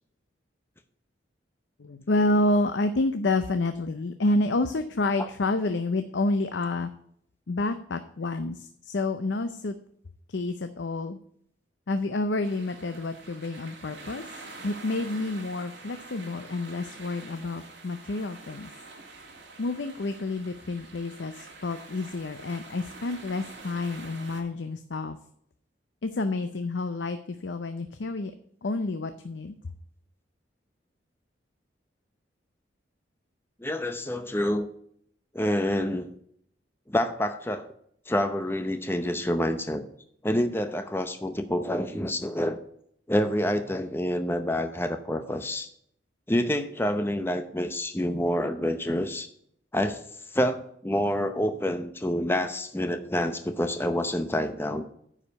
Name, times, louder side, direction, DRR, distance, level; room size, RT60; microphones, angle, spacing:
voice 1, 1.8-6.9 7.5-9.8 10.3-11.2 11.9-14.2 14.6-18.7 19.6-25.2 26.0-28.3 28.6-29.6, left 2 dB, 70° left, 9 dB, 0.6 m, -29 dB
sound 1, 12.4-24.4, right 3 dB, 65° right, 2.4 m, -46 dB
voice 2, 33.6-34.7 35.3-36.1 36.9-37.7 38.1-39.8 40.2-42.6 43.1-45.7 46.3-49.3 49.7-50.0 50.3-54.9, left 1 dB, 10° left, 8 dB, 0.7 m, -27 dB
9.9 x 4.9 x 6.9 m, 0.68 s
head